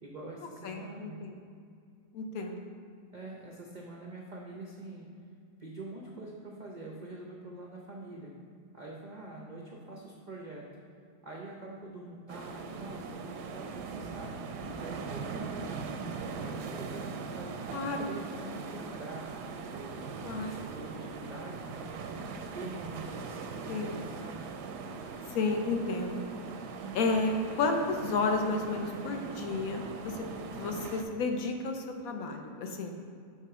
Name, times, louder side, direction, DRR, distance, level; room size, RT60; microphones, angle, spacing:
voice 1, 0.0-1.2 3.1-5.1 5.6-8.4 8.7-10.7 11.2-15.8 16.3-17.7 17.9-19.3 19.7-24.5, right 2 dB, 70° right, -2 dB, 0.4 m, -45 dB
voice 2, 0.6-1.3 2.1-2.6 17.7-18.1 20.2-20.5 23.7-24.0 25.3-26.2 26.9-32.9, left 3 dB, 70° left, 3 dB, 1.0 m, -32 dB
sound 1, 12.3-31.0, right 4 dB, 85° right, 1.2 m, -40 dB
6.3 x 3.8 x 5.6 m, 2.3 s
omnidirectional pair, 1.7 m